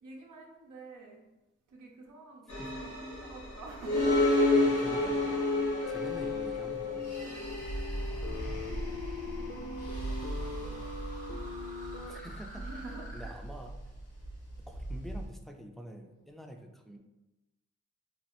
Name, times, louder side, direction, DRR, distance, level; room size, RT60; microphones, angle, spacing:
voice 1, 0.0-1.2 1.7-4.5 6.7-7.7 8.7-9.0 9.2-10.9 12.5-13.3, right 2 dB, 80° right, -1 dB, 0.6 m, -49 dB
sound 1, 2.5-15.3, left 2 dB, 90° left, 1.0 m, -32 dB
voice 2, 4.5-5.5 5.9-7.2 12.0-12.7 13.1-13.8 14.7-17.0, equal, ahead, 3 dB, 0.3 m, -46 dB
sound 2, 5.8-12.1, left 5 dB, 50° left, 0.5 m, -40 dB
sound 3, 6.7-13.3, right 1 dB, 30° right, 0.7 m, -52 dB
3.0 x 2.3 x 2.9 m, 0.99 s
cardioid pair, 70°, 30 cm